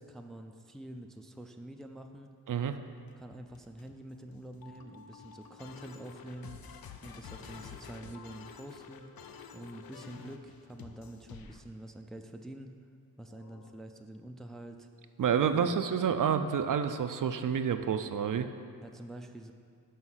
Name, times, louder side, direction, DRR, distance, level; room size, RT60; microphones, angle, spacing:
voice 1, 0.0-2.3 3.2-6.5 7.0-9.1 9.5-12.7 13.2-14.9 15.5-15.7 18.8-19.5, right 1 dB, ahead, 5 dB, 0.4 m, -46 dB
voice 2, 2.5-2.8 15.2-18.5, right 7 dB, 55° right, 8 dB, 0.4 m, -29 dB
sound 1, 2.8-11.6 13.3-13.7, left 6 dB, 70° left, 0.6 m, -50 dB
5.6 x 5.6 x 6.2 m, 2.3 s
wide cardioid pair, 75°, 37 cm